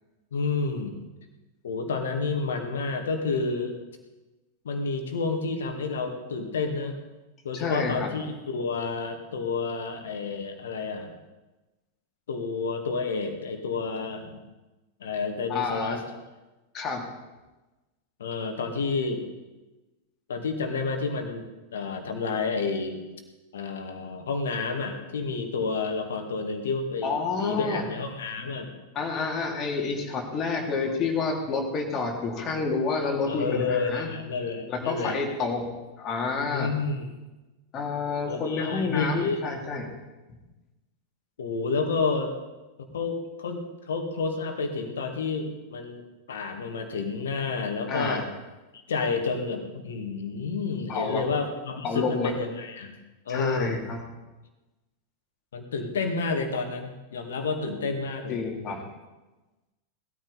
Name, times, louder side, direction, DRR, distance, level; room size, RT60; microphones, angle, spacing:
voice 1, 0.3-1.0 1.6-3.8 4.6-7.0 7.4-11.1 12.3-14.4 15.0-16.0 18.2-19.2 20.3-21.4 21.7-23.0 23.5-28.7 33.3-35.2 36.5-37.1 38.3-39.4 41.4-42.3 42.8-48.3 48.9-53.0 53.3-53.8 55.5-58.4, left 4 dB, 65° left, 5 dB, 2.1 m, -30 dB
voice 2, 7.5-8.1 15.5-16.0 16.7-17.1 27.0-27.8 28.9-34.1 34.7-35.7 36.0-36.7 37.7-39.9 40.3-40.4 47.9-48.2 50.9-51.2 51.8-52.3 53.3-54.0 58.3-58.8, left 4 dB, 30° left, 0 dB, 3.2 m, -29 dB
19.0 x 13.5 x 4.3 m, 1.1 s
figure-of-eight pair, 90°, 0 cm